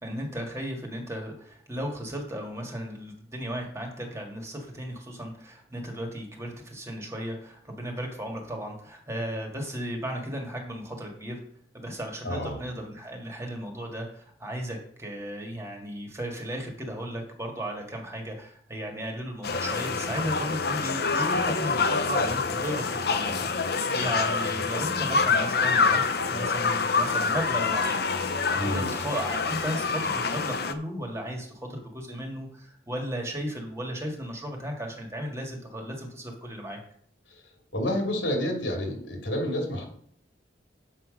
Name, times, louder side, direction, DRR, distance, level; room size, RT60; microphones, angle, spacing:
voice 1, 0.0-11.4 11.7-36.8, equal, 15° right, 1 dB, 1.8 m, -35 dB
voice 2, 12.2-12.6 28.6-28.9 37.3-37.4 37.7-39.8, left 1 dB, 85° left, 1 dB, 2.9 m, -29 dB
sound 1, 19.4-30.7, left 4 dB, 55° left, 0.7 m, -26 dB
7.6 x 5.8 x 6.4 m, 0.63 s
head